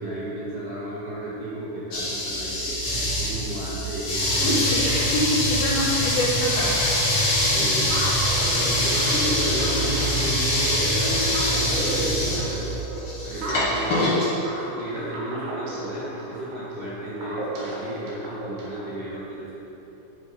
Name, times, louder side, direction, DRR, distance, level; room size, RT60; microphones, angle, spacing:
voice 1, 0.0-4.6 7.5-8.0 8.5-12.8 13.2-19.5, right 1 dB, 45° right, -11 dB, 2.1 m, -33 dB
sound 1, 1.9-14.3, left 1 dB, 40° left, 2.1 m, -24 dB
voice 2, 4.4-6.7, left 1 dB, 70° left, -4 dB, 2.8 m, -25 dB
sound 2, 6.2-11.3, left 1 dB, 90° right, 4.4 m, -37 dB
sound 3, 7.9-18.9, right 2 dB, 65° right, 3.0 m, -34 dB
10.5 x 5.2 x 5.4 m, 2.9 s
omnidirectional pair, 5.2 m